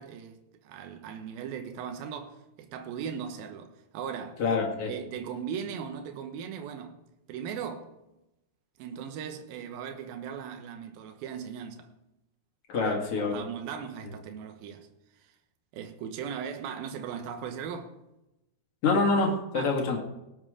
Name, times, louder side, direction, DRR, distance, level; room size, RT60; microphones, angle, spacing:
voice 1, 0.0-4.4 4.9-7.0 7.3-7.9 8.8-11.9 12.7-14.9 15.2-15.3 15.7-17.9 19.5-20.0, right 7 dB, 70° right, 2.8 m, -38 dB
voice 2, 4.4-4.9 12.7-13.3 18.8-20.0, left 3 dB, 45° left, 2.3 m, -26 dB
18.0 x 7.8 x 5.0 m
omnidirectional pair, 4.6 m